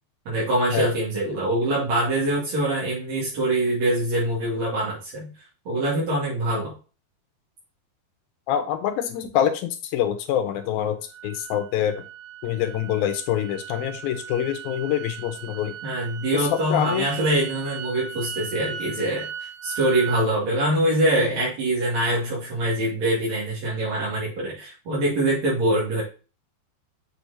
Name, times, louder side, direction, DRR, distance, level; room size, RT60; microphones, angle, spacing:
voice 1, 0.3-5.3 5.6-6.7 15.8-19.3 19.6-26.0, right 1 dB, 50° right, -7 dB, 3.3 m, -24 dB
voice 2, 8.5-11.0 11.2-12.0 12.4-15.7 16.3-16.4 16.7-17.0, left 10 dB, 80° left, 8 dB, 2.4 m, -25 dB
sound 1, 11.1-20.3, right 7 dB, 75° right, 3.0 m, -38 dB
7.1 x 6.0 x 2.8 m, 0.35 s
omnidirectional pair, 4.6 m